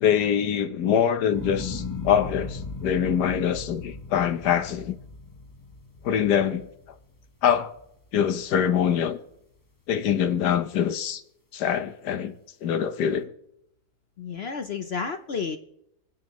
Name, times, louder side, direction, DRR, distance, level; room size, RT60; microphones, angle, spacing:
voice 1, 0.0-5.0 6.0-6.7 7.4-7.7 8.1-9.2 9.9-11.2 11.5-12.3 12.6-13.3, left 8 dB, 85° left, 1.5 m, -24 dB
sound 1, 1.3-7.6 8.1-8.7, left 4 dB, 15° left, 0.8 m, -37 dB
voice 2, 14.2-15.6, left 5 dB, 55° left, 0.8 m, -31 dB
27.0 x 9.6 x 3.1 m
omnidirectional pair, 1.7 m